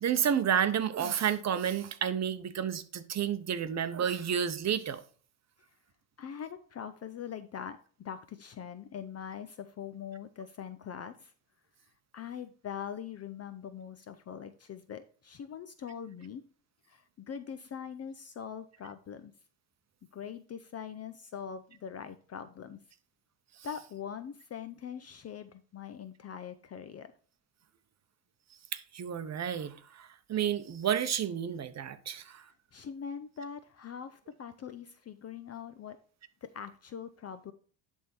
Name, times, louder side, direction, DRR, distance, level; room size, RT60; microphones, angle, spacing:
voice 1, 0.0-5.0 28.7-32.4, right 8 dB, 35° right, 0.9 m, -31 dB
voice 2, 6.2-11.3 12.1-16.4 16.9-19.3 20.1-22.8 23.6-27.1 32.3-32.4 32.7-36.0 36.4-37.5, left 8 dB, 35° left, 0.6 m, -42 dB
11.0 x 3.7 x 4.3 m
supercardioid pair, 95°, 45 cm